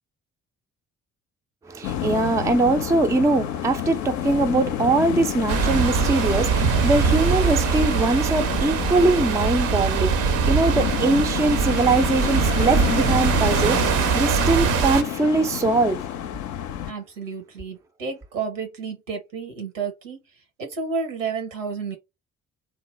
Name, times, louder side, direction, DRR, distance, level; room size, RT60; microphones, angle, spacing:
voice 1, 1.7-16.0, right 3 dB, 10° right, 0.4 m, -22 dB
sound 1, 1.8-16.9, left 11 dB, 50° left, 0.5 m, -29 dB
sound 2, 5.5-15.0, right 7 dB, 55° right, 0.6 m, -22 dB
voice 2, 16.9-20.2 20.6-22.0, right 5 dB, 80° right, 0.8 m, -31 dB
3.1 x 2.1 x 3.1 m
figure-of-eight pair, 40°, 37 cm